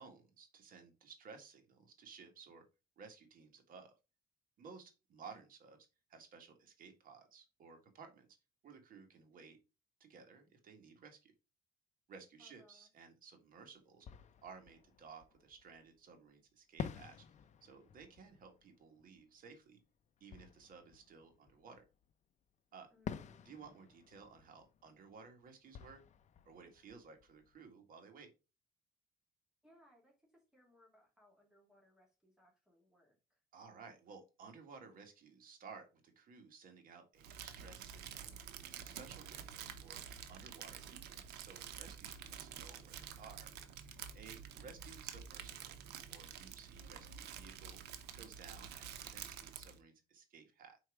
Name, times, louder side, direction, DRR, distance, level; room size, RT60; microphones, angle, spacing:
voice 1, 0.0-2.6 3.0-3.9 4.6-8.3 8.6-9.6 10.0-11.3 12.1-14.1 14.4-17.3 17.6-19.8 20.2-21.8 22.7-22.9 23.5-26.0 26.5-28.3 33.5-38.3 38.6-40.0 40.3-43.5 44.1-45.7 46.1-47.8 48.1-50.8, right 5 dB, 55° right, 5 dB, 1.8 m, -56 dB
voice 2, 12.4-12.9 22.9-23.4 29.6-33.4, left 1 dB, 5° right, -2 dB, 2.4 m, -68 dB
Fireworks, 13.4-13.5 14.0-16.0 16.8-22.1 23.0-27.8, left 7 dB, 45° left, 0.6 m, -51 dB
Crumpling crinkling, 37.2-49.8, right 8 dB, 80° right, 0.9 m, -49 dB
4.7 x 4.5 x 4.9 m, 0.29 s
cardioid pair, 110°, 17 cm